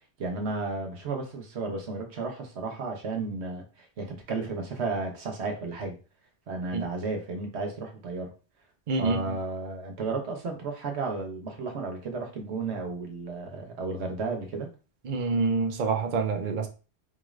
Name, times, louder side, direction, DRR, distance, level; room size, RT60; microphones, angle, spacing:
voice 1, 0.2-6.0 6.5-8.3 9.0-14.7, right 3 dB, 80° right, 1.2 m, -33 dB
voice 2, 8.9-9.4 15.0-16.7, right 4 dB, 50° right, 0.7 m, -27 dB
4.3 x 2.5 x 3.1 m
omnidirectional pair, 1.1 m